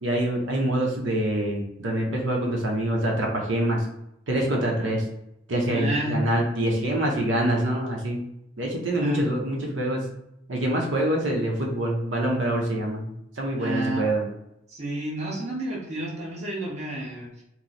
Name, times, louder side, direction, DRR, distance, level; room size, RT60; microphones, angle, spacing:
voice 1, 0.0-3.9 4.3-5.0 5.5-8.2 8.6-10.1 10.5-14.3, right 1 dB, 80° right, -1 dB, 0.7 m, -25 dB
voice 2, 5.7-6.2 9.0-9.2 13.6-14.0 14.7-17.4, right 1 dB, 35° right, -3 dB, 0.8 m, -30 dB
3.0 x 2.0 x 3.9 m, 0.83 s
head